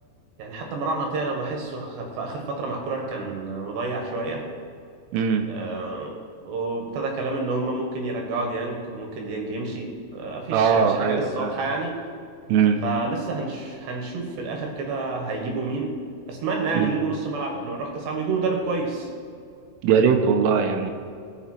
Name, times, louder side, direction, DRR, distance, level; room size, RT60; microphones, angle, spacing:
voice 1, 0.4-4.4 5.5-6.2 6.5-12.0 12.8-15.9 16.3-19.1, right 3 dB, 65° right, 1 dB, 3.4 m, -29 dB
voice 2, 5.1-5.5 10.5-11.6 12.5-12.8 16.7-16.9 19.8-20.9, right 6 dB, 80° right, 5 dB, 3.3 m, -20 dB
18.0 x 7.0 x 4.5 m, 2.4 s
omnidirectional pair, 5.8 m